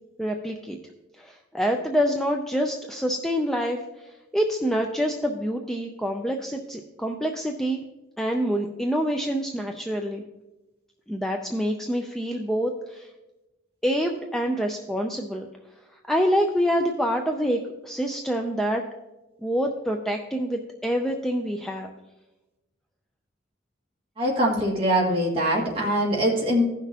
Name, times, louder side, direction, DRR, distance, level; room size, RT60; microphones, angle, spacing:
voice 1, 0.2-0.8 1.2-7.8 8.2-10.2 11.1-13.1 13.8-15.5 16.1-18.8 19.4-21.9, equal, ahead, 2 dB, 0.4 m, -26 dB
voice 2, 24.2-26.6, equal, 30° right, -3 dB, 1.8 m, -23 dB
16.0 x 6.0 x 2.8 m, 1.0 s
head